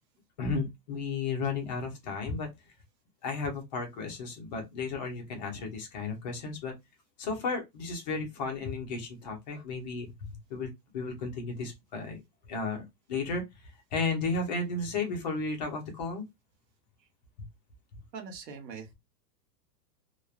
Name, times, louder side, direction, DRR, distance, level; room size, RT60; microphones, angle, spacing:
voice 1, 0.4-2.5 3.2-6.7 7.2-10.1 10.5-12.2 12.5-13.4 13.9-16.3, left 4 dB, 30° left, 0.5 m, -33 dB
voice 2, 18.1-18.9, right 5 dB, 80° right, 1.1 m, -42 dB
3.0 x 2.1 x 2.3 m
supercardioid pair, 160°, 50 cm